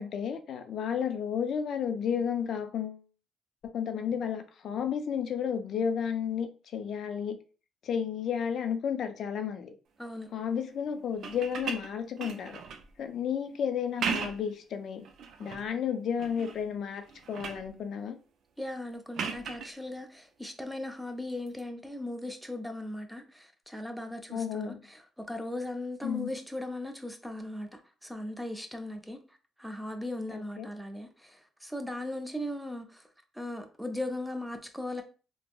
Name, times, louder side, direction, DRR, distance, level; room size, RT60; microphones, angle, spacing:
voice 1, 0.0-3.0 3.6-7.4 7.8-9.7 10.3-12.6 13.0-15.1 15.4-18.2 24.3-24.8 26.0-26.3 30.3-30.7, left 7 dB, 65° left, 0.3 m, -32 dB
voice 2, 10.0-10.3 18.6-29.2 29.6-33.1 33.3-35.0, left 1 dB, ahead, 0.5 m, -38 dB
sound 1, 11.1-12.9 13.8-14.6 15.0-15.7 16.2-16.7 17.0-17.7 19.1-19.7 21.5-21.6, right 6 dB, 70° right, 0.4 m, -37 dB
3.4 x 2.0 x 2.3 m
cardioid pair, 90°, 0 cm